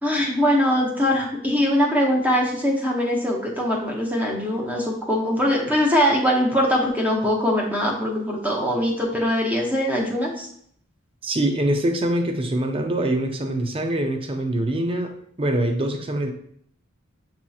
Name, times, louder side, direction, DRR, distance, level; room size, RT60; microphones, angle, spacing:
voice 1, 0.0-10.5, equal, 10° right, -2 dB, 0.8 m, -22 dB
voice 2, 11.2-15.1 15.4-16.3, right 1 dB, 25° right, 4 dB, 0.4 m, -24 dB
7.3 x 2.8 x 2.4 m, 0.65 s
head